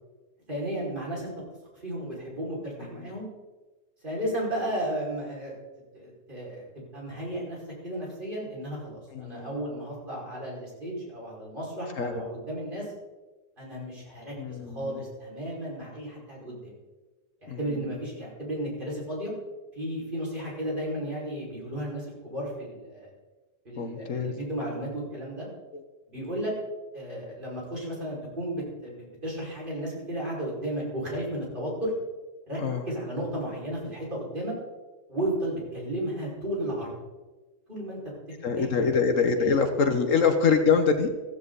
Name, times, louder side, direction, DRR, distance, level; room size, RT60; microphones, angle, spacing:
voice 1, 0.5-1.3 1.8-3.3 4.0-5.5 5.9-12.9 13.6-16.7 17.4-19.3 19.7-23.1 23.6-25.5 26.1-26.5 26.9-31.9 32.5-32.6 32.9-34.5 35.1-36.9 37.7-38.0 38.5-38.7 39.4-39.6, right 1 dB, 35° right, -5 dB, 5.7 m, -34 dB
voice 2, 9.1-9.5 12.0-12.2 14.4-15.0 17.5-17.8 23.8-24.3 25.7-25.8 32.6-32.8 38.4-41.1, left 5 dB, 65° left, 7 dB, 1.5 m, -25 dB
15.5 x 14.5 x 4.1 m, 1.2 s
omnidirectional pair, 1.5 m